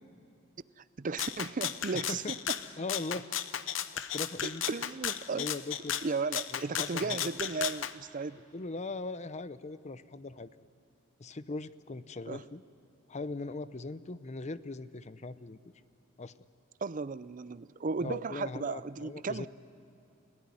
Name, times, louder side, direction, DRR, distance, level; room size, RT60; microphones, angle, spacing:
voice 1, 0.8-2.4 4.4-5.5 6.0-8.4 12.3-12.4 16.8-19.5, right 4 dB, 45° right, 17 dB, 0.5 m, -35 dB
Rattle (instrument), 1.2-7.9, left 10 dB, 80° left, 0.8 m, -35 dB
voice 2, 1.9-2.4 2.8-3.3 3.9-4.6 5.3-6.0 6.5-7.3 8.5-10.5 11.2-12.6 13.1-15.6 16.2-16.3 18.0-19.5, left 3 dB, 35° left, 14 dB, 0.7 m, -40 dB
29.5 x 17.0 x 10.0 m, 2.7 s
head